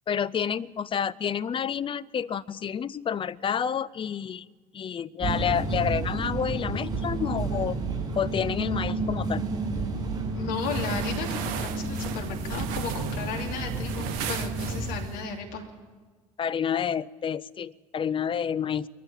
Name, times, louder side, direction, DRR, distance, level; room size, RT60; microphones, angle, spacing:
voice 1, 0.1-4.4 4.7-7.8 8.1-9.5 16.4-18.9, left 8 dB, 30° left, 16 dB, 0.7 m, -29 dB
sound 1, 5.2-15.0, right 3 dB, 25° right, 6.8 m, -31 dB
voice 2, 10.3-15.6, left 5 dB, 60° left, 2 dB, 2.8 m, -34 dB
sound 2, 10.6-15.2, right 9 dB, 60° right, 1.3 m, -36 dB
20.5 x 14.5 x 8.9 m, 1.4 s
figure-of-eight pair, 60°, 17 cm